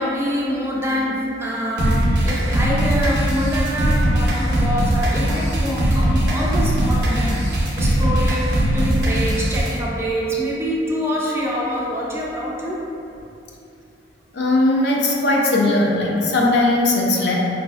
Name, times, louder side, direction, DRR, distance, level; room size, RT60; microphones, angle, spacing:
voice 1, 0.0-12.8, equal, 15° right, -4 dB, 0.4 m, -25 dB
sound 1, 1.8-9.8, right 1 dB, 60° right, 0.6 m, -20 dB
voice 2, 14.3-17.4, left 2 dB, 60° left, -2 dB, 0.5 m, -18 dB
4.7 x 2.6 x 2.4 m, 2.8 s
head